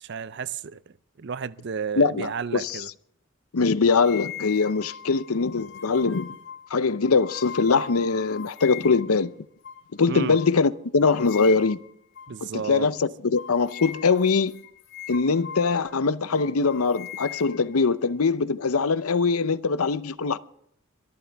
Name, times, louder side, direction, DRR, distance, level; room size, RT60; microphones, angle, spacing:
voice 1, 0.0-2.9 10.1-10.4 12.3-12.9, right 6 dB, 50° right, 0.5 m, -32 dB
voice 2, 2.0-2.8 3.5-6.3 6.7-9.3 10.0-11.8 12.4-14.6 15.1-20.4, left 4 dB, 85° left, 0.7 m, -22 dB
sound 1, 4.0-9.2 9.6-9.8 10.3-10.5 11.0-11.9 12.2-12.4 12.7-12.9 13.4-16.0 16.3-18.2, left 8 dB, 55° left, 1.8 m, -40 dB
24.0 x 13.5 x 3.5 m
head